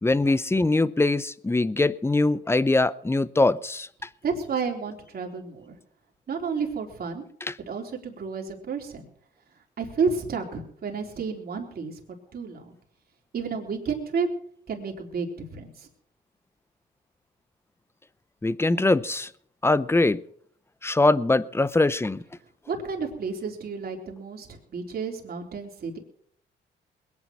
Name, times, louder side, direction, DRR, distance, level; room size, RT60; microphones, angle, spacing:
voice 1, 0.0-4.1 7.5-7.6 18.4-19.3 19.6-20.2 20.8-22.2, left 2 dB, 10° left, 17 dB, 0.7 m, -22 dB
voice 2, 4.2-5.7 6.3-7.2 7.7-9.1 9.8-12.0 12.3-12.8 13.3-14.3 14.7-15.9 22.7-26.0, right 5 dB, 50° right, 1 dB, 3.9 m, -31 dB
21.0 x 9.9 x 6.1 m, 0.63 s
cardioid pair, 90°, 20 cm